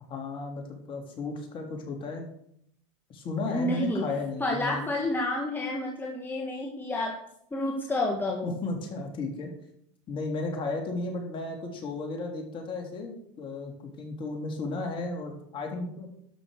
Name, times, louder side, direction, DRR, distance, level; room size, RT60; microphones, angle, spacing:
voice 1, 0.1-2.3 3.1-4.9 8.4-9.5 10.1-16.1, left 3 dB, 30° left, 2 dB, 3.3 m, -34 dB
voice 2, 3.5-4.1 4.4-7.2 7.5-8.5, left 1 dB, 10° left, 0 dB, 1.6 m, -29 dB
12.5 x 6.2 x 6.6 m, 0.70 s
hypercardioid pair, 115°, 16 cm